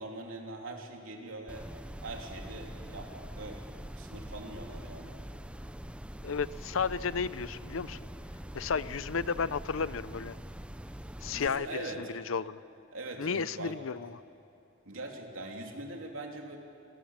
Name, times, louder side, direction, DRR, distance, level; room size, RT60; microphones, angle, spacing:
voice 1, 0.0-1.7 2.0-3.6 4.0-5.1 11.3-12.0 12.9-13.8 14.8-16.6, right 2 dB, 80° right, 2 dB, 3.2 m, -42 dB
sound 1, 1.5-11.5, equal, 5° right, 0.6 m, -44 dB
voice 2, 6.2-8.0 8.5-10.3 11.2-12.6 13.2-14.2, left 5 dB, 80° left, 17 dB, 0.6 m, -33 dB
27.0 x 17.5 x 7.4 m, 3.0 s
head